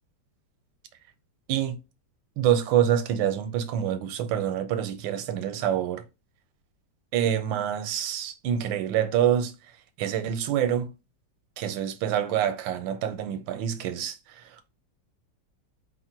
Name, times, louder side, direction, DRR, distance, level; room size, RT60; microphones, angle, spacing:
voice 1, 2.4-6.0 7.1-9.5 10.0-10.9 11.6-14.1, right 10 dB, 80° right, 1.3 m, -26 dB
4.4 x 2.1 x 4.4 m
omnidirectional pair, 2.0 m